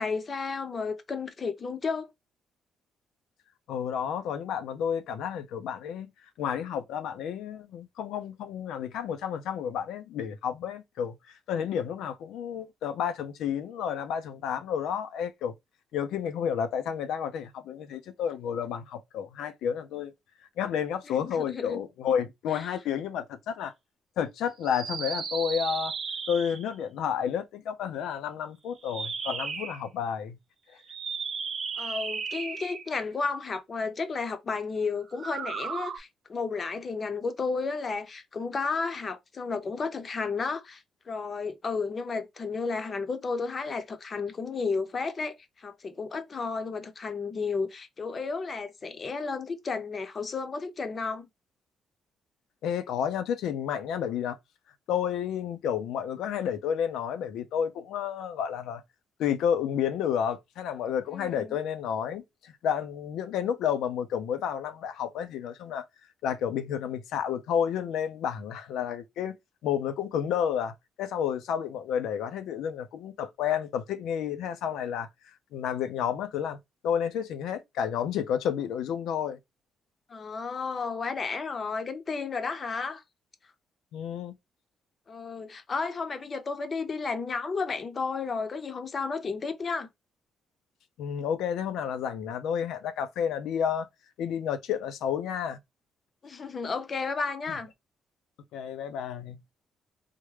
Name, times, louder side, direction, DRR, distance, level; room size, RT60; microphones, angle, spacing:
voice 1, 0.0-2.1 21.1-21.8 22.5-22.6 31.8-51.3 61.1-61.6 80.1-83.0 85.1-89.9 96.2-97.7, left 4 dB, 40° left, 0.6 m, -32 dB
voice 2, 3.7-6.1 6.4-15.5 15.9-20.1 20.6-23.7 24.2-25.9 26.3-30.4 52.6-54.4 54.9-58.8 59.2-65.8 66.2-75.1 75.5-76.6 76.8-79.4 83.9-84.3 91.0-93.9 94.2-95.6 98.5-99.4, left 8 dB, 85° left, 0.5 m, -31 dB
sound 1, 24.6-26.7 28.8-29.8 30.8-33.0 35.1-36.0, right 5 dB, 55° right, 0.7 m, -35 dB
3.5 x 2.1 x 3.1 m
cardioid pair, 90°, 0 cm